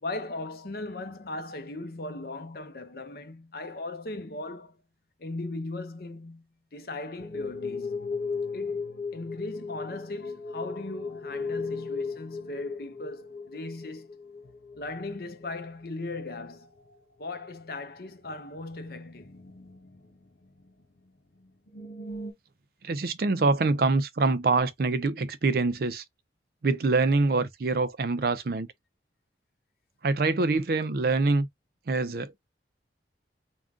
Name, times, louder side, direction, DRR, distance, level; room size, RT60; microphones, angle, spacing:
voice 1, 0.0-4.8 5.2-7.9 8.5-14.1 14.8-16.7 17.2-19.4, left 2 dB, 55° left, 0.7 m, -38 dB
sound 1, 7.2-15.7 16.0-16.6 16.9-17.0 17.5-17.6 18.6-20.7 21.1-21.2 21.4-22.3, left 4 dB, 75° left, 1.4 m, -37 dB
voice 2, 22.8-26.0 26.6-28.7 30.0-31.5 31.9-32.4, right 3 dB, 55° right, 0.5 m, -25 dB
3.7 x 2.3 x 3.6 m
head